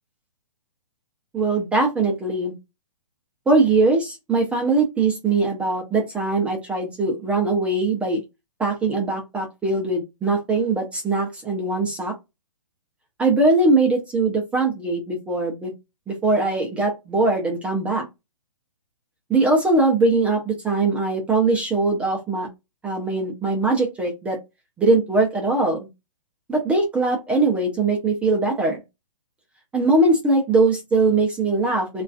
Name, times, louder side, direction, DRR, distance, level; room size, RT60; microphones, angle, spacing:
voice 1, 1.3-2.5 3.5-8.2 8.6-12.1 13.2-15.7 16.1-18.0 19.3-22.5 22.8-24.4 24.8-25.9 26.5-28.8 29.7-32.0, right 3 dB, 5° right, -1 dB, 0.4 m, -21 dB
2.4 x 2.3 x 2.3 m, 0.22 s
hypercardioid pair, 145°, 17 cm